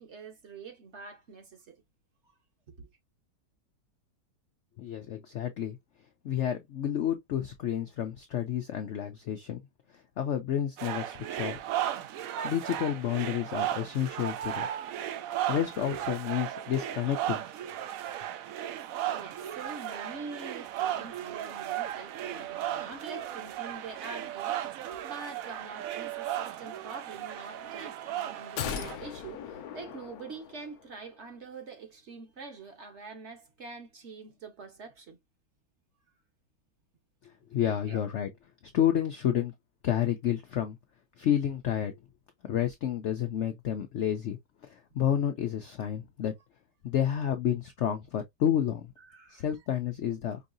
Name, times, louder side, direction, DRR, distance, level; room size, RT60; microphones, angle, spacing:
voice 1, 0.0-1.8 2.2-2.3 2.7-2.9 19.0-35.2 37.8-38.0 49.1-49.4, right 4 dB, 45° right, 1.1 m, -45 dB
voice 2, 4.8-5.8 6.2-9.6 10.2-11.6 12.4-14.7 15.5-17.4 37.2-38.3 38.7-39.5 39.8-40.8 41.2-41.9 42.5-44.4 44.7-46.3 46.8-48.9 49.3-50.4, left 10 dB, 85° left, 0.6 m, -30 dB
sound 1, 10.8-29.0, right 11 dB, 70° right, 0.8 m, -35 dB
sound 2, 28.6-30.9 31.2-31.3, left 8 dB, 65° left, 1.0 m, -38 dB
5.4 x 2.7 x 2.5 m
omnidirectional pair, 1.9 m